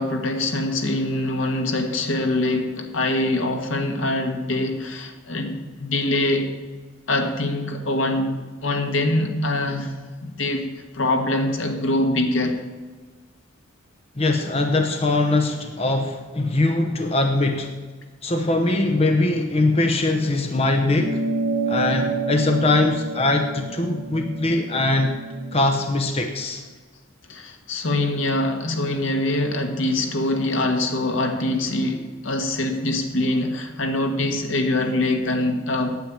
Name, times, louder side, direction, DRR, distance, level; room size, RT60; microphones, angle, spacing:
voice 1, 0.0-6.5 7.1-10.0 10.2-10.7 10.9-12.6 27.3-36.0, left 2 dB, 70° left, 5 dB, 1.5 m, -24 dB
voice 2, 14.2-17.7 18.2-21.2 21.7-25.1 25.5-26.6, left 2 dB, 30° left, 4 dB, 0.9 m, -21 dB
sound 1, 21.0-25.8, right 3 dB, 40° right, 1.5 m, -29 dB
9.3 x 8.6 x 8.6 m, 1.3 s
head